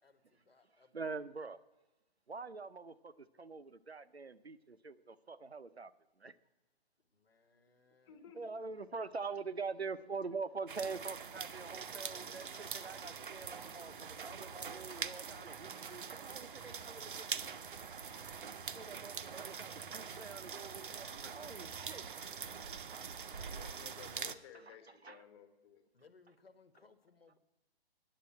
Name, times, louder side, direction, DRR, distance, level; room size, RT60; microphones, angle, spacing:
voice 1, 0.0-1.0 7.0-8.2 23.2-24.1 25.9-27.4, left 4 dB, 70° left, 11 dB, 1.3 m, -66 dB
voice 2, 0.9-1.6 2.3-5.9 6.2-6.3 8.3-17.3 18.7-22.1 24.5-25.2, right 4 dB, 90° right, 14 dB, 0.7 m, -45 dB
voice 3, 8.1-8.4 23.5-25.8, left 8 dB, 25° left, 7 dB, 1.3 m, -56 dB
sound 1, 10.7-24.4, right 6 dB, 55° right, 0.6 m, -44 dB
9.8 x 7.4 x 8.6 m, 1.1 s
figure-of-eight pair, 130°, 31 cm